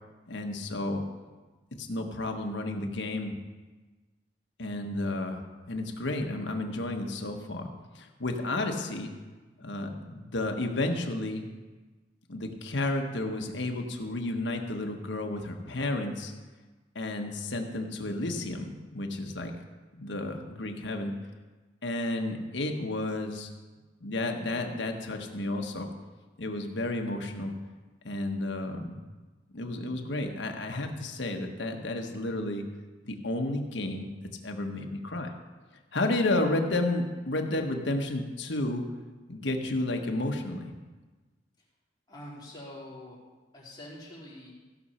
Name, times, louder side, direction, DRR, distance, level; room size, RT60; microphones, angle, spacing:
voice 1, 0.3-1.0 1.8-3.4 4.6-5.4 5.7-7.7 7.9-9.1 9.6-11.4 12.3-16.3 16.9-19.5 20.0-21.2 21.8-23.5 24.0-25.9 26.4-27.6 28.0-29.0 29.5-32.6 33.0-34.1 34.4-35.3 35.9-38.8 39.3-40.7, left 2 dB, 85° left, 4 dB, 1.3 m, -32 dB
voice 2, 42.1-43.2 43.5-44.5, left 1 dB, 25° left, -6 dB, 3.6 m, -45 dB
15.5 x 6.3 x 5.7 m, 1.3 s
head